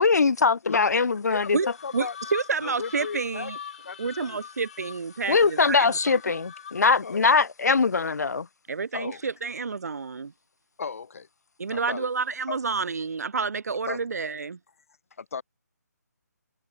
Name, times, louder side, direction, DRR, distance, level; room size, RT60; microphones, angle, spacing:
voice 1, 0.0-1.6 5.3-8.5, left 4 dB, 70° left, 1.0 m, -22 dB
voice 2, 1.3-2.2 2.6-3.5 3.8-4.4 7.0-7.3 8.9-9.3 10.8-11.3 11.7-12.1 12.5-12.6 13.9-14.0 15.2-15.4, left 5 dB, 55° left, 2.1 m, -35 dB
sound 1, 1.3-7.1, left 8 dB, 35° left, 1.7 m, -43 dB
voice 3, 1.9-3.6 4.0-6.0 6.3-6.4 8.7-10.3 11.6-14.6, right 5 dB, 65° right, 0.9 m, -29 dB
hypercardioid pair, 165°, 9 cm